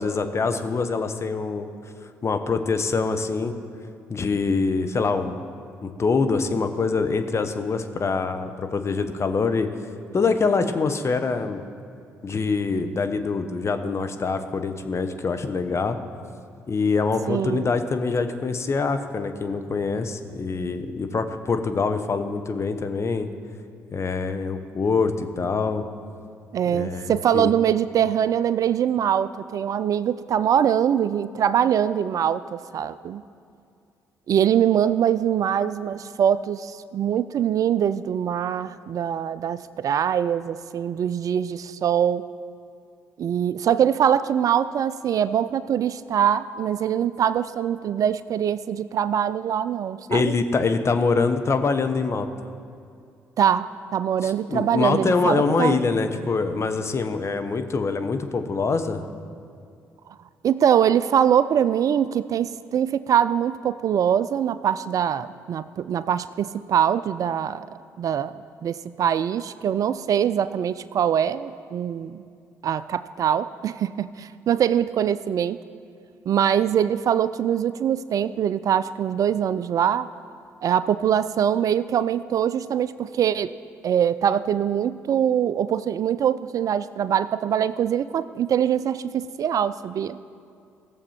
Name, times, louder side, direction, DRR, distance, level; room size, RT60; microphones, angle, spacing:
voice 1, 0.0-1.7 2.2-3.5 4.1-5.4 5.8-9.7 10.1-11.6 12.2-16.0 16.7-23.3 23.9-25.8 26.6-27.5 50.1-52.3 54.2-59.0, left 4 dB, 40° left, 8 dB, 1.0 m, -24 dB
voice 2, 17.3-17.7 26.5-33.2 34.3-42.2 43.2-50.3 53.4-55.8 60.4-67.7 68.0-68.3 68.6-72.2 72.6-75.6 76.3-80.1 80.6-83.5 83.8-90.2, right 9 dB, 55° right, 15 dB, 0.4 m, -23 dB
16.0 x 7.1 x 4.4 m, 2.4 s
hypercardioid pair, 50°, 7 cm